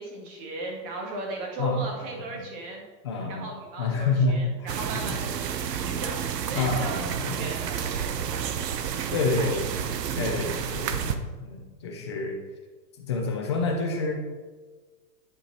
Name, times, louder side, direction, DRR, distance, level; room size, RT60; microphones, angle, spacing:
voice 1, 0.0-2.8 3.3-6.2 6.5-7.1 7.4-8.4 9.3-9.8 10.3-10.6, right 2 dB, 35° right, -1 dB, 2.2 m, -37 dB
voice 2, 1.6-2.5 3.0-3.5 3.8-5.2 6.5-7.4 9.1-9.7 10.2-12.4 13.0-14.2, left 3 dB, 20° left, 1 dB, 0.4 m, -28 dB
sound 1, 4.7-11.1, right 8 dB, 70° right, 1.0 m, -30 dB
10.5 x 5.0 x 4.2 m, 1.4 s
hypercardioid pair, 155°, 50 cm